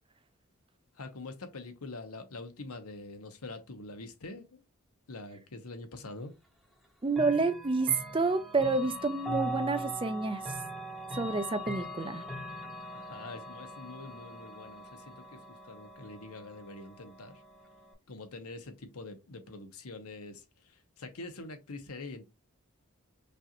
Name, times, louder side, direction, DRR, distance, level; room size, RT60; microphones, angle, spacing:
voice 1, 0.9-4.6 5.1-6.3 12.9-17.4 18.1-22.2, left 2 dB, 80° left, 0.9 m, -45 dB
voice 2, 7.0-10.4 11.1-12.2, right 3 dB, 25° right, 0.4 m, -29 dB
Chime / Clock, 7.1-17.9, equal, ahead, 0.8 m, -41 dB
5.3 x 2.5 x 2.9 m
head